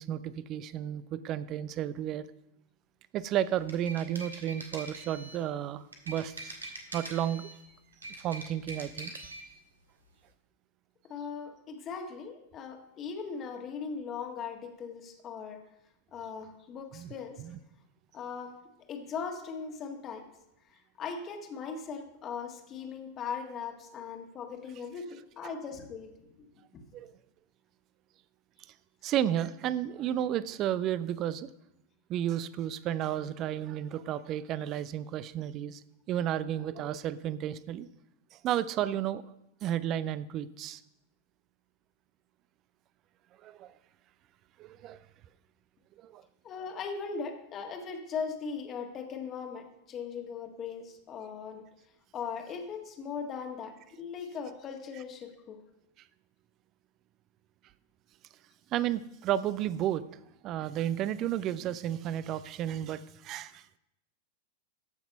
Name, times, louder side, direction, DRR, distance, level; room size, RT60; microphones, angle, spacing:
voice 1, 0.0-2.3 3.1-6.5 6.9-7.5 8.2-9.1 16.9-17.1 17.4-17.6 25.4-25.5 26.9-27.1 29.0-31.5 32.1-35.8 36.1-37.9 38.3-39.2 39.6-40.8 43.4-43.7 44.6-45.0 46.0-46.2 58.7-60.0 60.4-63.8, right 11 dB, 35° right, 0.5 m, -32 dB
sound 1, 3.5-5.5 5.9-7.6 7.9-9.5, right 2 dB, 75° right, 1.7 m, -43 dB
voice 2, 11.1-15.6 16.1-17.4 18.1-18.5 18.9-20.2 21.0-26.1 26.4-26.5 26.7-26.8 46.4-51.6 52.1-55.6, left 6 dB, 30° left, 1.5 m, -39 dB
14.0 x 6.0 x 5.4 m
figure-of-eight pair, 90°, 0 cm